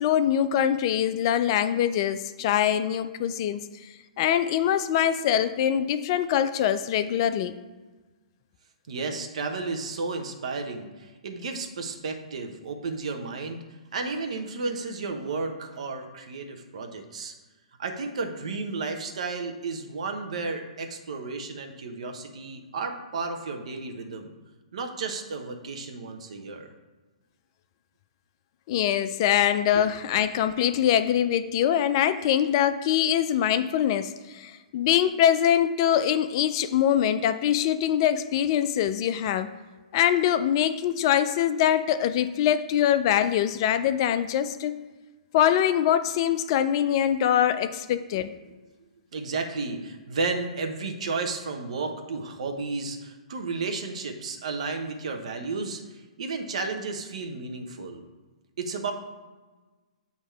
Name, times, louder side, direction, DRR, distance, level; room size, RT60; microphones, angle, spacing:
voice 1, 0.0-3.6 4.2-7.5 28.7-39.5 39.9-44.7 45.3-48.3, left 10 dB, 40° left, 11 dB, 0.4 m, -23 dB
voice 2, 8.9-13.6 13.9-17.3 17.8-24.3 24.7-26.7 29.7-29.9 49.1-58.0 58.6-58.9, right 4 dB, 60° right, 4 dB, 0.9 m, -33 dB
8.1 x 2.9 x 4.5 m, 1.3 s
figure-of-eight pair, 120°, 4 cm